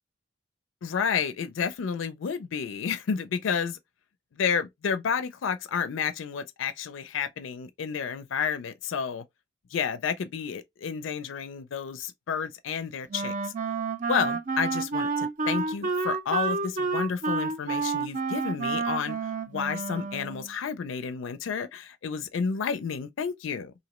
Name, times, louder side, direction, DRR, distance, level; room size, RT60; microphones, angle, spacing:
voice 1, 0.8-3.8 4.3-9.2 9.7-13.5 14.1-19.2 19.5-23.7, left 6 dB, 85° left, 0.4 m, -31 dB
Wind instrument woodwind instrument, 13.1-20.5, right 4 dB, 45° right, 0.4 m, -29 dB
2.9 x 2.6 x 2.9 m
head